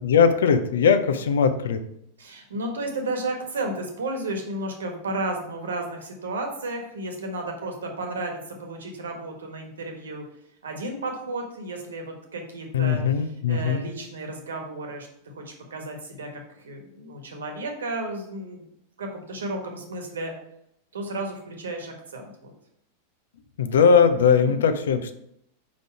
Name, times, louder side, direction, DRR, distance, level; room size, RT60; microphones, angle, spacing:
voice 1, 0.0-1.8 12.7-13.8 23.6-25.1, left 6 dB, 65° left, 10 dB, 0.6 m, -20 dB
voice 2, 2.2-10.2 10.6-15.1 15.3-18.6 19.0-20.3 20.9-22.5 24.5-24.6, right 2 dB, 65° right, 3 dB, 1.4 m, -33 dB
5.3 x 5.2 x 4.7 m, 0.76 s
figure-of-eight pair, 90°, 0 cm